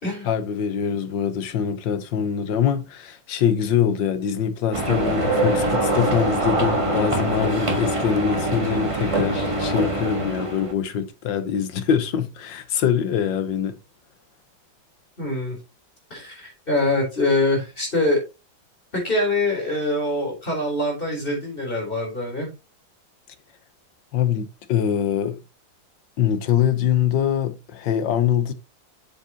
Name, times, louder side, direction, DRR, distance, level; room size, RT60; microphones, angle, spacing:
voice 1, 0.2-13.8 24.1-25.4 26.2-28.5, left 8 dB, 75° left, 1.7 m, -23 dB
sound 1, 4.7-10.7, right 2 dB, 20° right, 1.3 m, -23 dB
voice 2, 15.2-15.6 16.1-18.2 18.9-22.5, left 2 dB, 25° left, 4.0 m, -24 dB
8.0 x 7.1 x 2.9 m
omnidirectional pair, 2.0 m